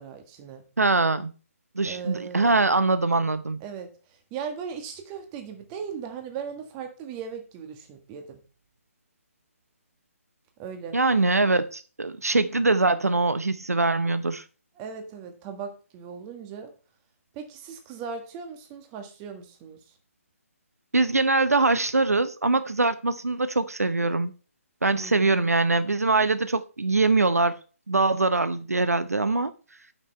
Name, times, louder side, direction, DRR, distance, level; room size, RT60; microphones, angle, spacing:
voice 1, 0.0-0.6 1.8-2.6 3.6-3.9 4.3-8.4 10.6-11.0 14.8-16.7 17.3-19.8 24.8-25.5, right 6 dB, 20° right, 1.5 m, -38 dB
voice 2, 0.8-1.3 1.8-3.6 10.9-14.4 20.9-24.3 24.8-27.6 27.9-29.5, right 3 dB, 80° right, 0.8 m, -23 dB
9.7 x 6.0 x 4.4 m
figure-of-eight pair, 145°, 8 cm